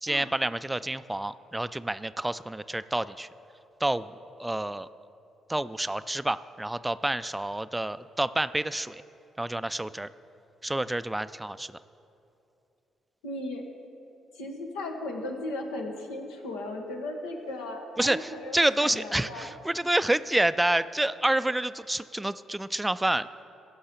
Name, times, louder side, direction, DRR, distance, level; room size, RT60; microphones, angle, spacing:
voice 1, 0.0-3.3 3.8-4.1 4.4-4.9 5.5-9.0 9.4-10.1 10.6-11.7 18.0-23.4, right 1 dB, 15° right, 14 dB, 0.3 m, -28 dB
voice 2, 13.2-13.6 14.3-19.5, left 2 dB, 90° left, 1 dB, 1.2 m, -36 dB
15.0 x 5.5 x 6.8 m, 2.8 s
hypercardioid pair, 50°, 0 cm